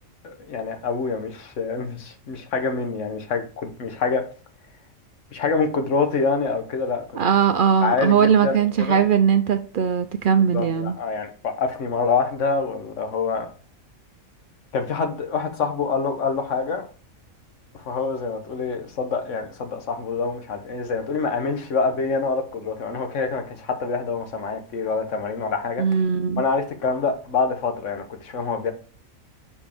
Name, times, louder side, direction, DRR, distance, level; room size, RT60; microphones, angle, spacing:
voice 1, 0.2-4.2 5.3-7.2 7.8-9.0 10.5-13.5 14.7-16.9 17.8-25.8 26.4-28.7, left 4 dB, 65° left, 1.3 m, -26 dB
voice 2, 7.1-11.0 25.8-26.4, right 7 dB, 70° right, 0.5 m, -19 dB
7.2 x 4.8 x 3.4 m
omnidirectional pair, 1.4 m